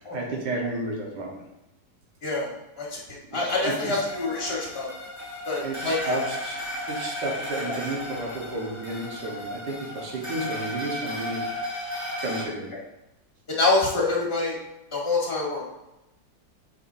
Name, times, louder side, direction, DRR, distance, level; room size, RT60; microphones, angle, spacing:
voice 1, 0.1-1.4 3.3-4.0 5.2-5.3 5.6-11.5 12.2-12.7, right 2 dB, 80° right, -1 dB, 1.9 m, -32 dB
voice 2, 2.2-5.1 5.5-6.1 13.5-14.6 14.9-15.7, left 3 dB, 35° left, -3 dB, 1.6 m, -26 dB
sound 1, 3.5-12.4, left 1 dB, 10° right, 2.3 m, -35 dB
8.2 x 4.7 x 2.7 m, 0.94 s
omnidirectional pair, 1.8 m